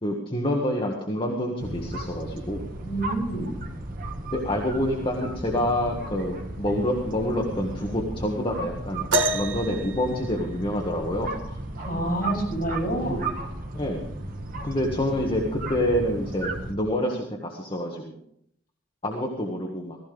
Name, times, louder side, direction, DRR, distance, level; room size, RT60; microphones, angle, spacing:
voice 1, 0.0-2.7 4.3-11.6 13.0-13.1 13.7-14.0 14.6-18.2 19.0-20.0, left 1 dB, 30° left, 0 dB, 1.7 m, -27 dB
sound 1, 1.6-16.7, right 2 dB, 50° right, 1.7 m, -35 dB
voice 2, 2.8-3.5 11.8-13.2, right 1 dB, 50° left, -3 dB, 7.9 m, -28 dB
sound 2, 9.1-11.0 12.7-12.8 13.6-13.8 14.7-14.8, right 2 dB, 85° right, 1.4 m, -28 dB
16.0 x 16.0 x 3.5 m, 0.70 s
head